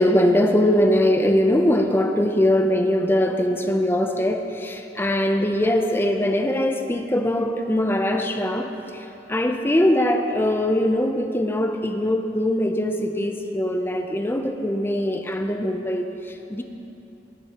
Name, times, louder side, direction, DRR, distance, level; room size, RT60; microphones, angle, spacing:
voice 1, 0.0-16.6, left 1 dB, 15° left, 5 dB, 0.5 m, -22 dB
18.0 x 8.2 x 2.9 m, 2.9 s
head